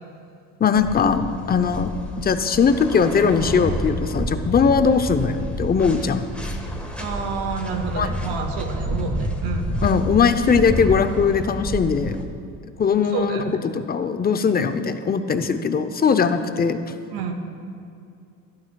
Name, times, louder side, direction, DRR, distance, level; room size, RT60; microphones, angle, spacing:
voice 1, 0.6-1.9 2.2-6.3 8.0-8.1 9.8-12.2 12.8-16.8, left 6 dB, 25° left, 10 dB, 0.6 m, -20 dB
sound 1, 0.8-12.2, equal, 5° left, 1.4 m, -29 dB
voice 2, 7.0-9.7 13.1-13.7 17.1-17.3, right 5 dB, 75° right, 3 dB, 1.2 m, -29 dB
15.5 x 12.0 x 2.3 m, 2.5 s
supercardioid pair, 90°, 41 cm